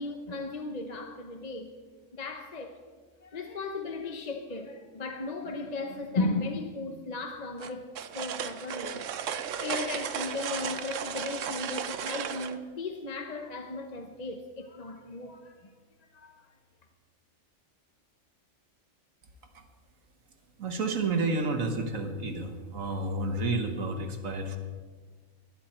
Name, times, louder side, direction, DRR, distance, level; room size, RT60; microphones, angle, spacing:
voice 1, 0.0-1.7 2.1-2.8 3.2-9.1 9.6-15.7 16.1-16.5, left 3 dB, 35° left, 1.0 m, -36 dB
sound 1, 7.6-12.6, right 8 dB, 75° right, 1.1 m, -35 dB
voice 2, 20.6-24.6, right 2 dB, 90° right, 1.8 m, -30 dB
20.0 x 11.0 x 4.4 m
omnidirectional pair, 1.3 m